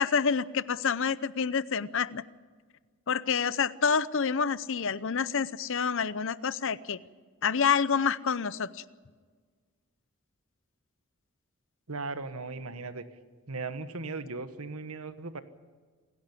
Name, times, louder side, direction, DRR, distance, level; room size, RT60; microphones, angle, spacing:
voice 1, 0.0-2.2 3.1-7.0 7.4-8.8, left 6 dB, 60° left, 17 dB, 0.7 m, -28 dB
voice 2, 11.9-13.0 13.5-15.4, right 3 dB, 75° right, 11 dB, 1.4 m, -37 dB
28.0 x 11.0 x 9.9 m, 1.6 s
head